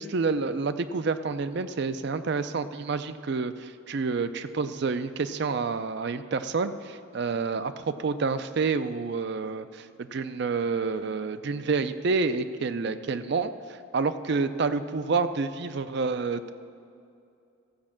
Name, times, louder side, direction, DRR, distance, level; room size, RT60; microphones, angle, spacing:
voice 1, 0.0-13.5 13.9-16.5, right 4 dB, 55° right, 12 dB, 0.4 m, -28 dB
14.5 x 5.2 x 7.4 m, 2.5 s
head